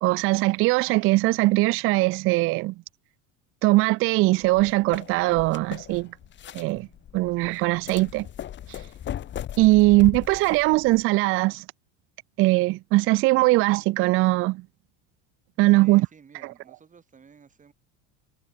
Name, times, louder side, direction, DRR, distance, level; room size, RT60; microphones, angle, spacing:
voice 1, 0.0-2.7 3.6-6.1 6.5-6.9 7.1-8.3 8.7-8.8 9.6-11.6 12.4-14.6 15.6-16.1, right 21 dB, 35° right, 0.4 m, -21 dB
sound 1, 4.4-11.0, left 10 dB, 30° left, 1.6 m, -38 dB
voice 2, 15.8-17.7, right 6 dB, 20° right, 5.8 m, -53 dB
cardioid pair, 150°, 37 cm